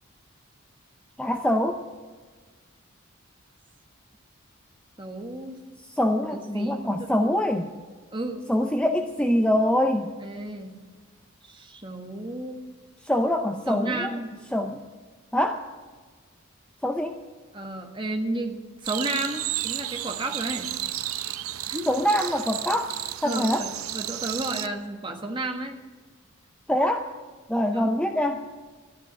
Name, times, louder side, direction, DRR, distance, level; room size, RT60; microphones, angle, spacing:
voice 1, 1.2-1.8 5.9-7.7 8.5-10.1 13.0-14.1 14.5-14.8 15.3-15.7 16.8-17.2 21.9-23.0 23.2-23.7 26.7-27.1 27.5-28.4, left 1 dB, 5° left, 5 dB, 0.6 m, -24 dB
voice 2, 5.0-5.6 6.3-7.3 8.1-8.5 10.2-10.7 11.4-12.6 13.7-14.4 17.5-20.7 21.6-21.9 23.2-25.8 27.7-27.9, right 2 dB, 25° right, 3 dB, 1.5 m, -32 dB
sound 1, 18.8-24.7, right 13 dB, 85° right, 0.6 m, -32 dB
13.0 x 10.5 x 9.6 m, 1.4 s
head